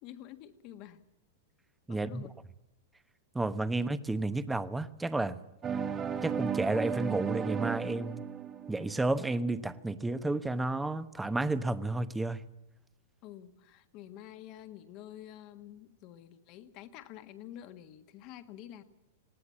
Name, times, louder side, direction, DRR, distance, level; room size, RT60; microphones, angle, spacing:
voice 1, 0.0-1.0 1.9-2.4 13.2-18.8, left 12 dB, 45° left, 9 dB, 1.6 m, -48 dB
voice 2, 1.9-2.2 3.3-5.4 6.2-8.2 8.7-12.4, right 2 dB, 10° right, 12 dB, 1.0 m, -31 dB
sound 1, 5.6-9.5, right 7 dB, 25° right, 1.3 m, -35 dB
19.5 x 17.0 x 8.6 m, 0.90 s
hypercardioid pair, 105°, 0 cm